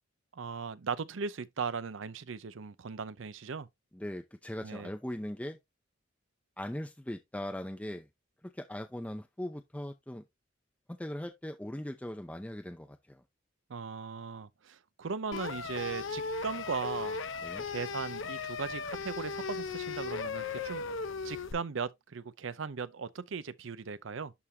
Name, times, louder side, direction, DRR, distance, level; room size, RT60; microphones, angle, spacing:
voice 1, 0.3-3.7 4.6-4.9 13.7-17.2 17.7-20.8 21.2-24.3, right 5 dB, 70° right, 0.6 m, -38 dB
voice 2, 3.9-5.6 6.6-8.1 8.4-10.2 10.9-13.2 17.4-17.7, left 1 dB, 5° left, 0.5 m, -40 dB
sound 1, 15.3-21.5, left 5 dB, 70° left, 0.8 m, -37 dB
11.0 x 3.7 x 2.7 m
head